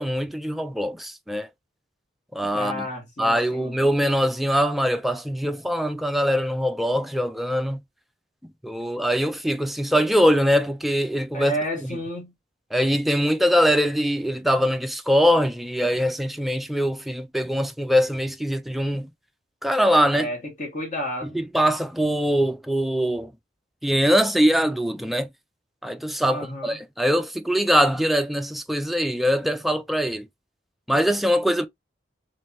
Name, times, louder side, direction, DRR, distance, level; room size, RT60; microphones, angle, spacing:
voice 1, 0.0-1.5 2.3-2.9 3.2-7.8 8.6-11.5 11.8-11.9 12.7-19.1 19.6-20.3 21.2-23.3 23.8-25.3 25.8-30.2 30.9-31.7, equal, ahead, 0.3 m, -22 dB
voice 2, 2.5-3.8 11.3-12.3 20.1-21.4 26.3-26.8, equal, 45° left, 1.6 m, -31 dB
3.3 x 3.3 x 2.6 m
head